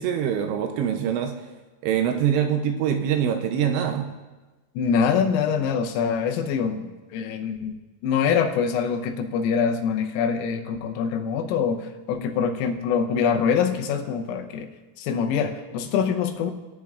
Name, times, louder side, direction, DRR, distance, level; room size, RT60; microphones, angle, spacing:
voice 1, 0.0-1.3 1.8-4.1, right 8 dB, 80° right, 5 dB, 2.6 m, -24 dB
voice 2, 4.8-7.7 8.0-14.7 15.0-16.5, left 6 dB, 85° left, 5 dB, 3.5 m, -24 dB
19.0 x 10.5 x 2.4 m, 1.2 s
omnidirectional pair, 5.8 m